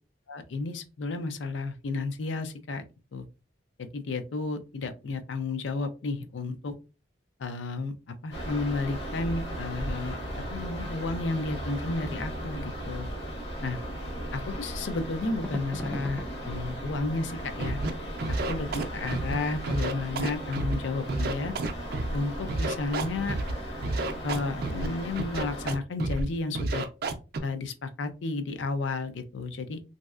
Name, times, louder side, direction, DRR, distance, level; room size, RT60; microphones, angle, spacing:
voice 1, 0.3-2.9 3.1-3.2 3.8-6.7 7.4-10.2 10.5-13.1 13.6-13.8 14.3-17.8 18.5-21.5 22.1-23.4 24.2-26.8 27.4-29.8, left 3 dB, 85° left, 0.4 m, -32 dB
sound 1, 8.3-25.8, equal, 65° left, 1.2 m, -37 dB
sound 2, 15.4-17.6 18.1-18.2, left 1 dB, 10° left, 0.3 m, -40 dB
Scratching (performance technique), 17.6-17.9 18.2-19.3 19.6-20.7 21.1-22.2 22.5-23.5 23.8-24.9 25.2-25.7 26.0-26.3 26.5-27.4, right 2 dB, 55° right, 0.4 m, -30 dB
3.1 x 2.7 x 2.3 m
head